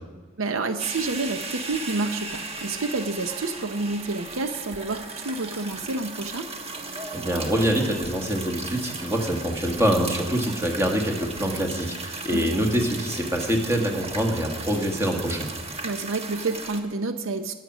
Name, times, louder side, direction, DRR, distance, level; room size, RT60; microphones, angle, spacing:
voice 1, 0.4-6.5 12.3-12.6 15.8-17.5, right 3 dB, 70° right, 8 dB, 0.7 m, -29 dB
sound 1, 0.8-16.8, right 3 dB, 30° right, 1.3 m, -36 dB
voice 2, 7.1-15.5, equal, 15° right, 2 dB, 1.7 m, -25 dB
19.5 x 7.6 x 6.2 m, 1.3 s
head